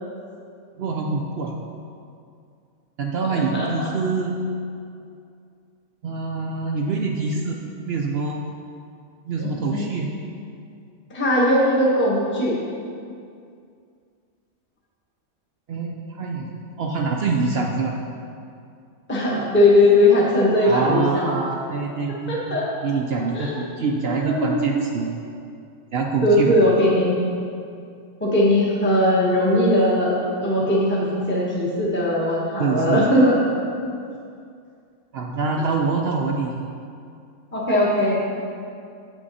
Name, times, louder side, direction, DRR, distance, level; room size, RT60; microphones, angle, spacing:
voice 1, 0.8-1.5 3.0-4.4 6.0-8.5 9.3-10.1 15.7-17.9 20.6-22.6 22.8-25.1 25.9-26.5 32.6-33.0 35.1-36.7, right 4 dB, 60° right, 1 dB, 0.7 m, -25 dB
voice 2, 3.3-3.9 9.4-9.8 11.1-12.5 19.1-21.2 22.3-22.6 23.2-23.6 24.1-24.7 26.2-27.1 28.2-33.4 37.5-38.2, left 1 dB, 10° left, -5 dB, 1.0 m, -19 dB
8.3 x 6.1 x 4.1 m, 2.4 s
omnidirectional pair, 1.4 m